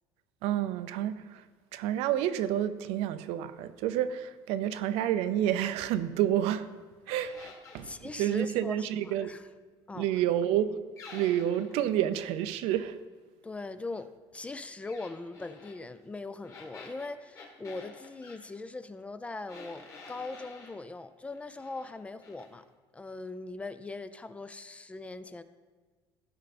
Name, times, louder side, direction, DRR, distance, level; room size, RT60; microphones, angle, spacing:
voice 1, 0.4-1.4 1.7-6.7 7.1-9.3 9.9-10.8 11.1-13.0, right 11 dB, 80° right, 0.6 m, -29 dB
sound 1, 7.1-7.9 11.0-11.8 14.9-15.8 16.4-18.4 19.5-20.8 21.3-21.9 22.2-22.5, left 4 dB, 30° left, 1.9 m, -50 dB
voice 2, 7.8-9.4 9.9-10.0 13.4-14.1 14.3-22.6 22.9-25.4, left 3 dB, 10° left, 0.4 m, -40 dB
15.0 x 5.5 x 4.2 m
cardioid pair, 150°, 10 cm